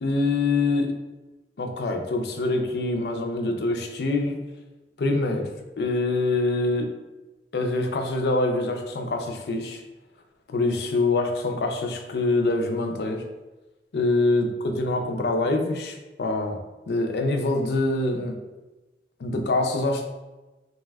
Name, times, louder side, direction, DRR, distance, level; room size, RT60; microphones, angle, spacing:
voice 1, 0.0-1.0 1.6-4.5 5.0-6.9 7.5-9.8 10.5-13.3 13.9-16.6 16.9-18.4 19.2-20.1, left 2 dB, 65° left, 4 dB, 0.4 m, -25 dB
2.6 x 2.2 x 3.3 m, 1.1 s
head